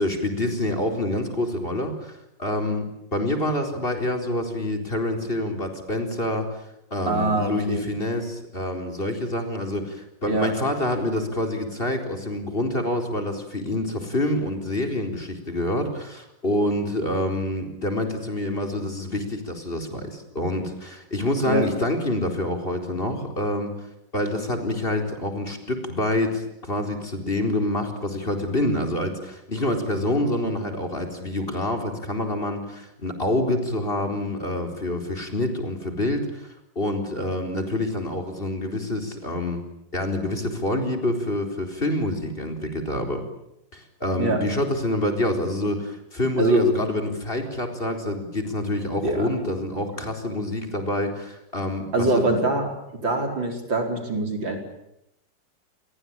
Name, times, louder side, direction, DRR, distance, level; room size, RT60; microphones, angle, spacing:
voice 1, 0.0-6.6 6.9-23.7 24.1-36.5 36.8-39.6 39.9-43.2 43.7-52.3, left 1 dB, 30° left, 4 dB, 4.5 m, -27 dB
voice 2, 7.1-7.9 10.3-10.5 21.5-21.7 44.2-44.4 46.4-46.6 49.0-49.3 51.9-52.7 53.0-54.6, right 2 dB, 80° right, 4 dB, 5.4 m, -23 dB
29.0 x 21.5 x 8.9 m, 0.81 s
omnidirectional pair, 2.0 m